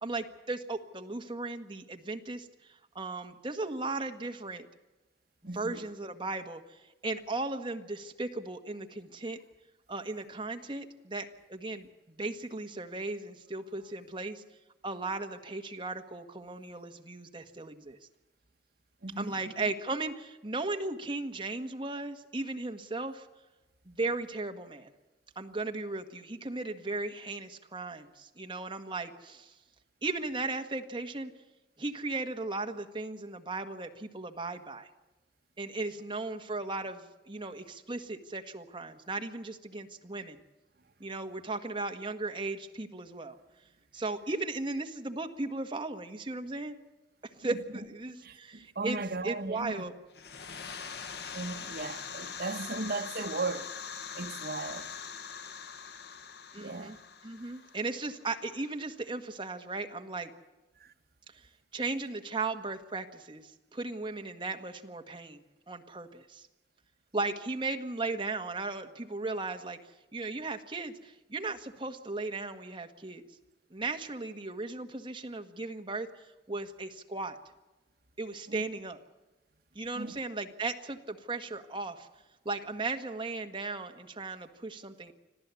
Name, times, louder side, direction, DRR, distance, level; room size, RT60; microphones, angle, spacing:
voice 1, 0.0-4.7 5.5-9.4 9.9-14.4 14.8-18.0 19.2-23.3 23.8-24.9 25.3-29.5 30.0-31.3 31.8-34.9 35.6-40.4 41.0-43.4 43.9-46.8 47.2-49.9 56.5-57.0 57.2-60.3 61.7-66.5 67.1-69.8 70.1-73.2 73.7-77.4 78.2-79.0 79.7-82.1 82.4-85.1, right 3 dB, 30° right, 1.6 m, -36 dB
voice 2, 5.4-5.8 19.0-19.5 47.5-47.6 48.2-49.8 51.3-53.7 54.1-54.9 56.6-57.0 60.8-60.9 78.5-78.6 79.9-80.2, right 3 dB, 60° right, 1.3 m, -37 dB
sound 1, 50.1-58.7, left 6 dB, 60° left, 1.3 m, -43 dB
26.0 x 15.0 x 8.4 m
head